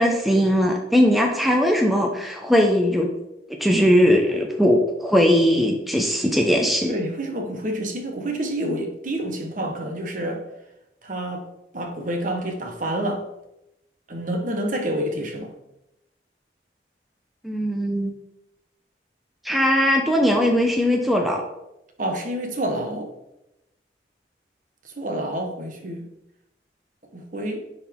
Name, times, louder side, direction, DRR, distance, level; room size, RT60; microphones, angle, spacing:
voice 1, 0.0-3.1 3.6-6.9 17.4-18.1 19.4-21.4, equal, ahead, 0.7 m, -19 dB
voice 2, 6.9-10.4 11.0-11.5 11.7-13.2 14.1-15.5 22.0-23.1 25.0-26.1 27.1-27.6, right 1 dB, 45° right, 1.1 m, -28 dB
10.5 x 4.1 x 3.6 m
head